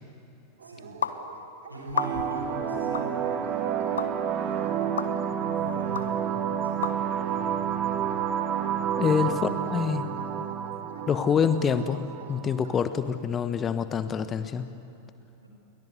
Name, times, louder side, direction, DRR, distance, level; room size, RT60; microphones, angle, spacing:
Dog, 0.6-12.8, right 6 dB, 65° right, 2.1 m, -48 dB
voice 1, 0.6-0.9 1.7-7.5 8.9-9.2 15.4-15.5, right 1 dB, 90° right, 1 dB, 5.7 m, -43 dB
sound 1, 1.0-1.2 1.9-2.4 2.9-3.1 4.0-4.1 5.0-5.1 5.9-6.1 6.8-6.9, left 7 dB, 70° left, 1.4 m, -30 dB
sound 2, 1.9-12.9, right 8 dB, 30° right, 2.2 m, -30 dB
voice 2, 9.0-10.0 11.1-14.7, left 7 dB, 25° left, 12 dB, 1.2 m, -26 dB
29.5 x 23.5 x 8.1 m, 3.0 s
figure-of-eight pair, 90°, 0 cm